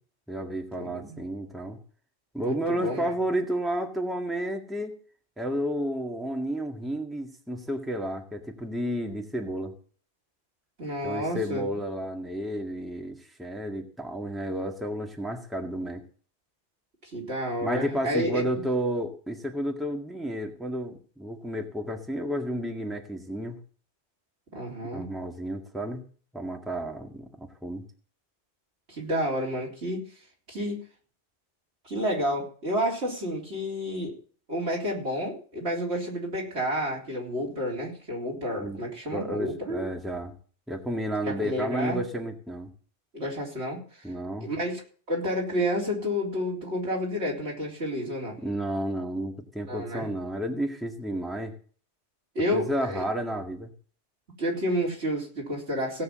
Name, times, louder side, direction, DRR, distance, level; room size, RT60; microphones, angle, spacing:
voice 1, 0.3-1.8 2.3-4.9 5.4-9.7 11.0-16.0 17.6-23.6 24.9-26.0 26.3-27.8 38.6-38.8 39.1-40.3 40.7-42.7 44.0-44.5 48.4-51.5 52.5-53.7, equal, ahead, 2 dB, 1.8 m, -31 dB
voice 2, 0.8-1.2 2.4-3.1 10.8-11.7 17.0-18.5 24.5-25.1 28.9-30.0 30.5-30.8 31.8-34.1 34.5-39.8 41.2-42.0 43.1-43.8 44.4-44.8 45.1-48.4 49.7-50.1 52.4-53.0 54.4-56.0, equal, 80° right, -2 dB, 4.2 m, -30 dB
17.0 x 6.2 x 7.5 m, 0.43 s
omnidirectional pair, 1.1 m